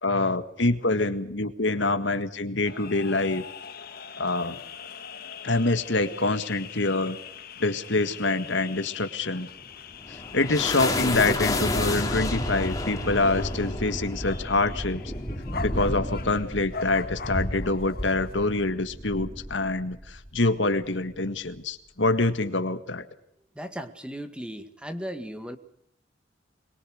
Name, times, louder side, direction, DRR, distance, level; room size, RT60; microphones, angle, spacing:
voice 1, 0.0-3.4 4.2-4.6 5.4-7.2 7.6-9.5 10.1-15.0 15.6-23.0, left 2 dB, 75° left, 10 dB, 1.8 m, -26 dB
sound 1, 2.6-18.3, left 6 dB, 55° left, 1.8 m, -42 dB
sound 2, 9.7-20.4, left 1 dB, 20° left, 3.3 m, -31 dB
voice 2, 23.6-25.6, equal, 5° right, 8 dB, 1.9 m, -36 dB
23.0 x 22.5 x 6.5 m, 0.72 s
head